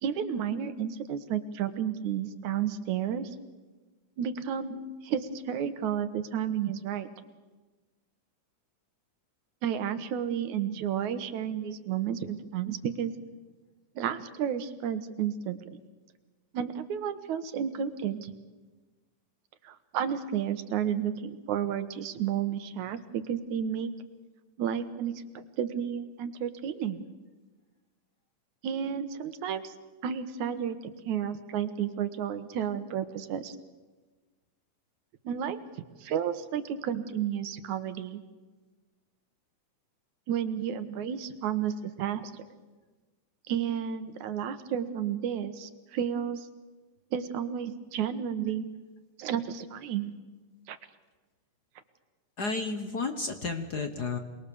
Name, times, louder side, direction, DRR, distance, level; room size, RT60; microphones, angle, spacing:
voice 1, 0.0-3.3 4.2-7.1 9.6-13.1 14.0-15.6 16.5-18.3 19.6-23.9 24.6-27.0 28.6-29.7 30.0-33.6 35.2-35.6 36.0-38.2 40.3-42.4 43.5-46.5 47.1-48.7 49.2-50.1 50.7-50.8, right 8 dB, 75° right, 11 dB, 2.6 m, -32 dB
voice 2, 52.4-54.2, left 4 dB, 50° left, 7 dB, 1.2 m, -32 dB
27.0 x 21.0 x 7.0 m, 1.3 s
omnidirectional pair, 3.5 m